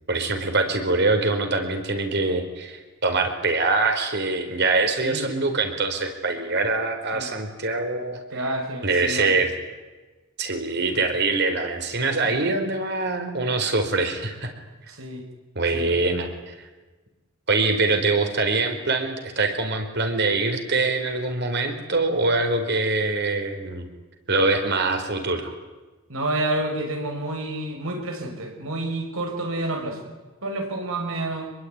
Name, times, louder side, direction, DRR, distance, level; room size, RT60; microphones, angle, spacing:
voice 1, 0.1-8.4 8.8-9.5 10.4-14.5 15.5-16.6 17.5-23.9 24.3-25.5, right 3 dB, 50° right, 6 dB, 4.5 m, -24 dB
voice 2, 8.3-9.3 10.9-11.0 12.2-12.5 14.9-15.2 15.7-15.9 26.1-30.1 30.4-31.5, right 1 dB, 70° right, 4 dB, 6.4 m, -29 dB
26.0 x 22.0 x 9.7 m, 1.2 s
head